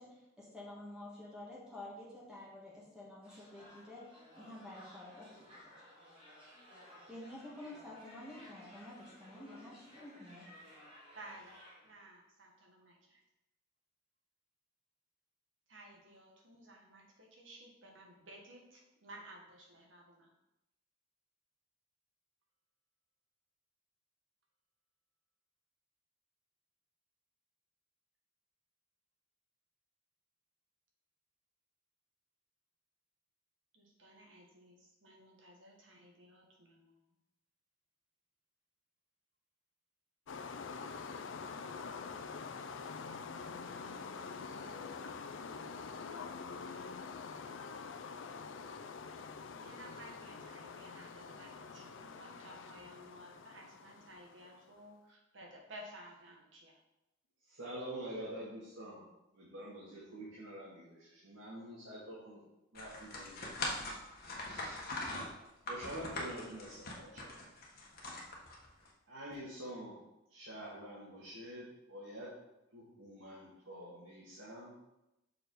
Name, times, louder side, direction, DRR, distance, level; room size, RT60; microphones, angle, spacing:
voice 1, 0.0-4.0 4.4-5.5 7.1-10.4, left 1 dB, 5° right, -6 dB, 1.6 m, -50 dB
sound 1, 3.2-12.0, equal, 30° right, 2.3 m, -57 dB
voice 2, 11.2-13.2 15.7-20.3 33.7-37.0 49.5-56.8, right 1 dB, 70° right, 0 dB, 1.6 m, -55 dB
sound 2, 40.3-54.7, left 5 dB, 65° left, 0.4 m, -46 dB
voice 3, 57.5-59.0 59.3-62.4 62.7-63.8 64.4-64.8 65.7-67.4 69.1-70.0 70.3-72.3 72.7-74.7, right 1 dB, 85° right, -7 dB, 2.0 m, -47 dB
sound 3, 62.7-68.9, left 2 dB, 50° left, 1.4 m, -42 dB
6.3 x 4.7 x 4.7 m, 0.93 s
head